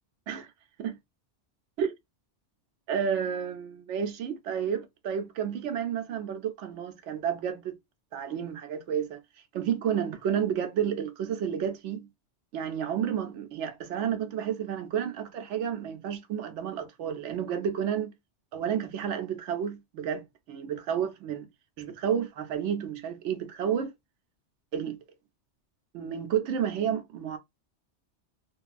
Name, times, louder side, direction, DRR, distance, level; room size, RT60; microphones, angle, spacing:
voice 1, 2.9-7.7 8.1-9.2 9.5-12.1 12.5-18.1 18.5-21.5 21.8-23.9 24.7-25.0 25.9-27.4, right 8 dB, 85° right, 0.9 m, -31 dB
2.7 x 2.3 x 2.4 m
omnidirectional pair, 1.2 m